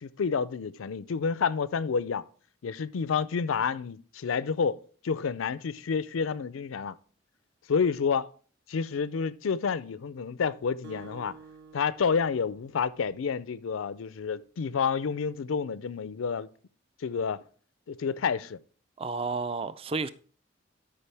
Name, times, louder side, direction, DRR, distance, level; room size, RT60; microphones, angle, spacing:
voice 1, 0.0-2.2 2.6-4.8 5.0-6.9 7.7-8.3 8.7-11.3 11.7-16.5 17.0-17.4 17.9-18.6, left 6 dB, 90° left, 0.4 m, -29 dB
Acoustic guitar, 10.8-13.6, right 4 dB, 60° right, 1.1 m, -51 dB
voice 2, 19.0-20.1, right 4 dB, 30° right, 0.4 m, -31 dB
12.5 x 5.5 x 3.3 m
head